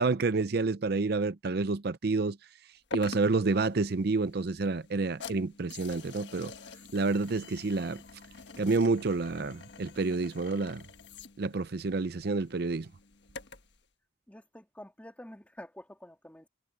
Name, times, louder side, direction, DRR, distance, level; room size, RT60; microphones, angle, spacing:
voice 1, 0.0-2.4 2.9-6.5 6.9-8.0 8.6-10.8 11.4-12.9, right 3 dB, 60° right, 0.6 m, -29 dB
sound 1, 2.9-13.8, left 3 dB, 70° left, 1.4 m, -47 dB
voice 2, 14.3-16.5, left 1 dB, 10° left, 2.7 m, -48 dB
head